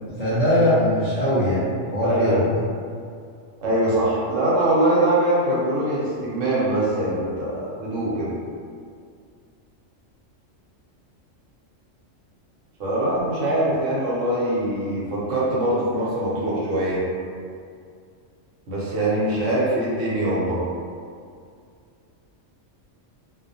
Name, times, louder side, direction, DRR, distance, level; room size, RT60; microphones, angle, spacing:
voice 1, 0.2-2.4, left 1 dB, 45° left, -12 dB, 0.6 m, -21 dB
voice 2, 2.0-2.4 3.6-8.3 12.8-17.0 18.7-20.6, right 1 dB, 75° right, -7 dB, 1.0 m, -23 dB
2.3 x 2.2 x 2.6 m, 2.3 s
omnidirectional pair, 1.3 m